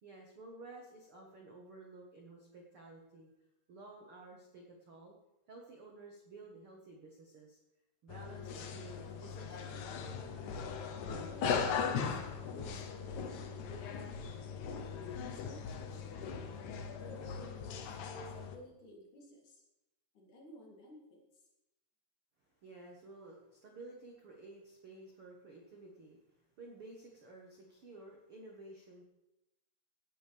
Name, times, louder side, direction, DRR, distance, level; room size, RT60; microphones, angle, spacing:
voice 1, 0.0-3.3 3.7-5.1 5.5-7.6 8.0-9.8 22.4-29.0, right 2 dB, 60° right, 0 dB, 1.4 m, -53 dB
sound 1, 8.1-18.6, left 6 dB, 90° left, 1.6 m, -39 dB
voice 2, 10.9-14.3 15.3-16.5 17.0-19.6 20.1-21.2, equal, 50° left, -3 dB, 4.4 m, -56 dB
17.5 x 11.5 x 3.5 m, 0.95 s
omnidirectional pair, 4.9 m